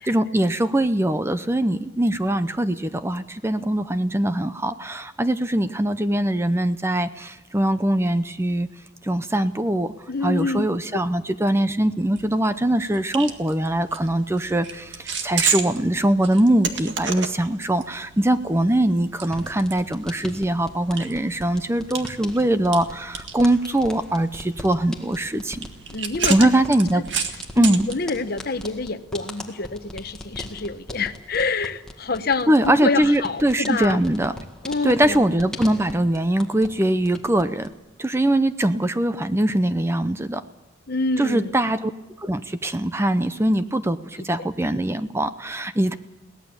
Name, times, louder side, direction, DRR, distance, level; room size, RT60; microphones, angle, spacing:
voice 1, 0.1-8.7 9.0-9.9 10.2-25.7 26.3-27.0 27.6-27.9 32.5-34.3 34.8-37.7 38.0-40.4 41.2-41.9 42.2-44.0 44.2-45.9, right 1 dB, 15° right, 11 dB, 0.6 m, -22 dB
voice 2, 10.1-11.0 25.9-26.5 26.9-27.0 27.5-34.0 34.6-35.2 40.9-41.6 44.2-44.5, left 3 dB, 55° left, 11 dB, 1.0 m, -27 dB
sound 1, 12.2-28.7, right 6 dB, 70° right, 1.9 m, -33 dB
sound 2, 19.3-36.8 37.0-37.7, left 1 dB, 5° left, 1.9 m, -40 dB
22.5 x 18.0 x 7.0 m, 1.0 s
head